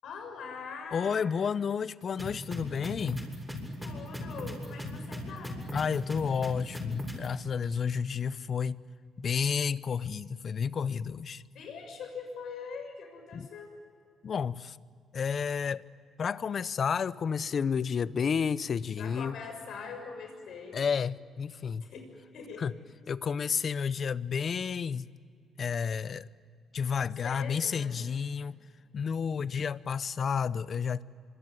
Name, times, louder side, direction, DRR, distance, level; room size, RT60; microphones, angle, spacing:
voice 1, 0.0-1.2 3.8-5.6 11.5-13.7 19.0-20.8 21.8-22.7 27.2-28.0, left 5 dB, 75° left, 6.5 m, -42 dB
voice 2, 0.9-3.3 5.7-8.8 9.2-11.4 13.3-13.5 14.2-14.8 15.1-15.8 16.2-19.3 20.7-21.9 22.6-22.7 23.1-25.1 25.6-26.3 26.7-28.6 28.9-31.0, left 6 dB, 50° left, 0.7 m, -31 dB
sound 1, 2.2-7.3, left 1 dB, 5° right, 7.3 m, -37 dB
25.5 x 24.5 x 9.6 m
cardioid pair, 90°, 0 cm